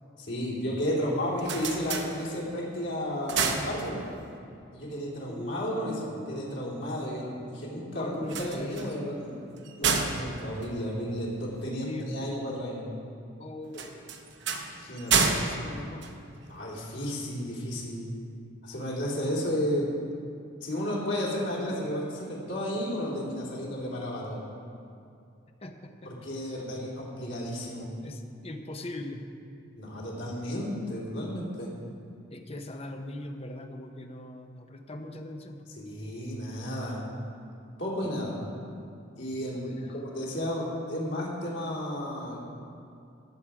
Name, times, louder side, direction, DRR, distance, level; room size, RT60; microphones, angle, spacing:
voice 1, 0.2-4.1 4.7-8.3 8.5-9.3 9.8-12.9 14.8-15.3 16.5-18.1 18.6-19.9 20.6-24.4 26.0-27.9 29.8-31.7 35.8-37.0 37.8-38.4 39.2-42.6, equal, 60° left, -5 dB, 3.0 m, -33 dB
sound 1, 1.1-2.7 3.1-4.4 8.2-11.6 13.7-16.8, right 5 dB, 55° right, 0.9 m, -31 dB
voice 2, 5.3-6.6 8.0-8.8 11.8-12.4 13.4-14.1 15.1-16.1 21.6-21.8 25.6-26.1 26.7-26.8 28.0-29.2 32.3-35.6 39.5-40.0, left 1 dB, 30° left, 5 dB, 0.7 m, -40 dB
16.0 x 7.5 x 4.9 m, 2.5 s
head